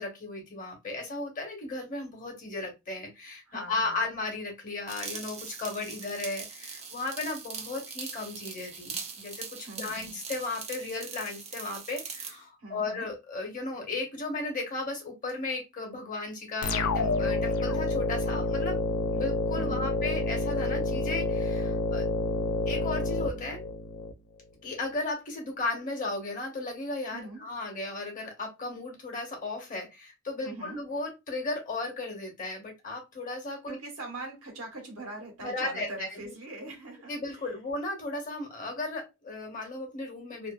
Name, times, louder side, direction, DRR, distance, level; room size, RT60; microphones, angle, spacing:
voice 1, 0.0-18.8 19.1-22.1 22.7-23.7 24.6-33.8 35.4-36.3 37.1-40.5, left 2 dB, 40° left, 0.9 m, -35 dB
voice 2, 3.5-4.0 9.6-10.2 12.6-13.0 19.5-19.9 27.1-27.5 30.4-30.8 33.7-37.5, right 2 dB, 80° right, 1.1 m, -42 dB
sound 1, 4.9-12.4, right 6 dB, 30° right, 0.5 m, -41 dB
sound 2, 16.6-24.1, left 2 dB, 80° left, 0.4 m, -29 dB
2.5 x 2.3 x 2.2 m
head